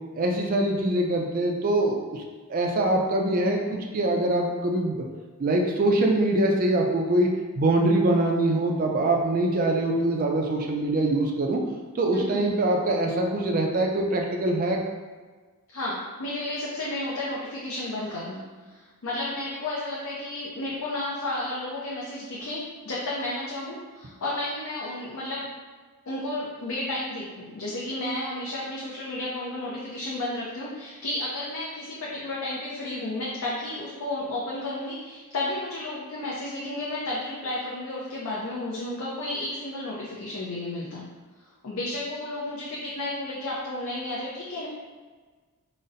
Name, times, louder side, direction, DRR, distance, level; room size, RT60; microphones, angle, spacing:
voice 1, 0.1-2.2 2.5-5.0 5.4-7.3 7.6-11.6 11.9-14.8, right 1 dB, 40° right, 1 dB, 0.3 m, -23 dB
voice 2, 12.1-12.4 15.7-25.5 26.1-41.0 41.6-44.7, left 1 dB, 65° left, -6 dB, 0.5 m, -32 dB
3.9 x 2.0 x 2.5 m, 1.4 s
head